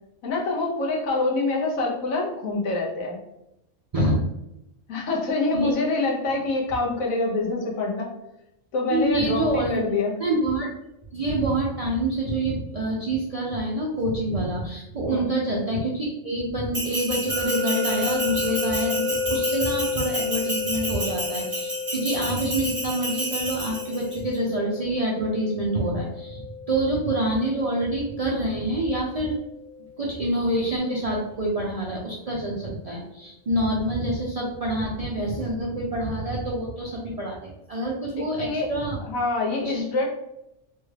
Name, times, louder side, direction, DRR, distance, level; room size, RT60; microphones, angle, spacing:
voice 1, 0.2-3.2 4.9-8.1 8.7-10.1 15.1-15.3 38.2-38.7 39.0-40.0, left 3 dB, 90° left, -2 dB, 1.2 m, -26 dB
voice 2, 8.9-9.8 10.2-10.7 11.1-29.4 30.0-39.0 39.6-39.8, right 1 dB, 65° right, -4 dB, 0.3 m, -26 dB
Bell, 16.7-24.2, right 1 dB, 20° right, 0.7 m, -31 dB
sound 1, 17.3-30.2, left 5 dB, 30° left, 0.8 m, -32 dB
3.3 x 2.3 x 3.2 m, 0.85 s
omnidirectional pair, 1.4 m